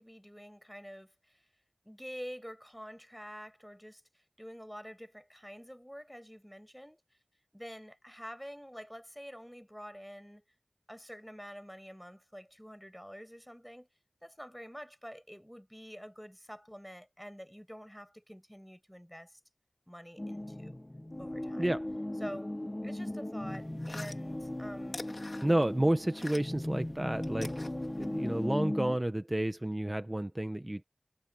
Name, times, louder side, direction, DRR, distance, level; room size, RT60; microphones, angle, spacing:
voice 1, 0.0-1.4 1.8-7.0 7.5-10.4 10.9-13.9 14.2-19.4 19.9-20.8 21.2-21.8 22.2-22.6 22.8-25.0, equal, ahead, 6.0 m, -47 dB
sound 1, 20.2-29.0, left 1 dB, 30° left, 1.3 m, -38 dB
sound 2, 23.5-26.7 27.0-28.5, left 2 dB, 60° left, 3.5 m, -46 dB
voice 2, 25.4-27.6 28.0-30.8, right 1 dB, 25° right, 1.0 m, -30 dB
wide cardioid pair, 45°, 0 cm